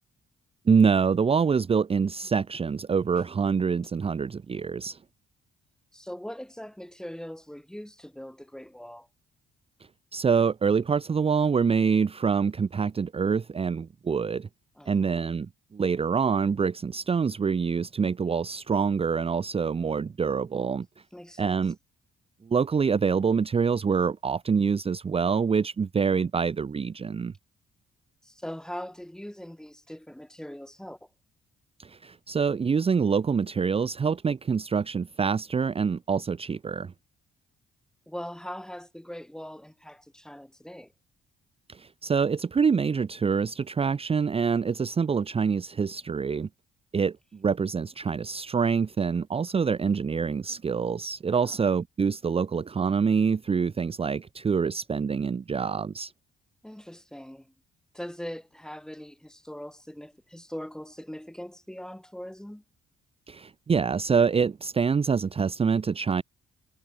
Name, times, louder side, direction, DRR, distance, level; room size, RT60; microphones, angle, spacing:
voice 1, 0.7-5.0 10.1-14.5 14.9-20.9 21.4-21.7 22.4-27.3 31.8-36.9 41.7-46.5 46.9-56.1 63.3-66.2, right 6 dB, 30° right, 0.7 m, -26 dB
voice 2, 5.9-9.1 14.8-15.2 21.1-21.6 28.2-31.1 38.1-40.9 51.3-51.6 56.6-57.5 57.9-62.6, equal, 5° left, 2.3 m, -41 dB
cardioid pair, 90°, 20 cm